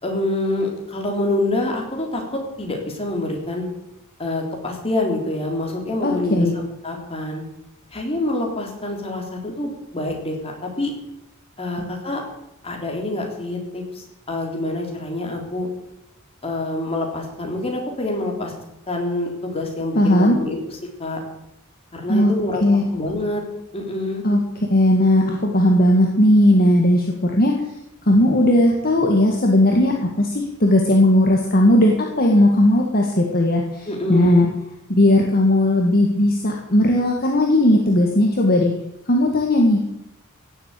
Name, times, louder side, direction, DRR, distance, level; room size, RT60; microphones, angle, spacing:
voice 1, 0.0-3.7 4.2-7.4 7.9-10.9 11.6-12.2 12.6-15.7 16.4-18.5 18.9-21.2 21.9-22.6 22.9-23.4 23.7-24.2 33.9-34.4, left 2 dB, 30° left, 1 dB, 3.7 m, -26 dB
voice 2, 6.0-6.6 11.8-11.9 20.0-20.4 22.1-22.3 22.6-22.9 24.2-24.4 24.7-27.5 28.1-34.5 34.9-38.7 39.1-39.8, left 1 dB, 45° left, 0 dB, 1.9 m, -17 dB
16.5 x 7.9 x 8.4 m, 0.86 s
head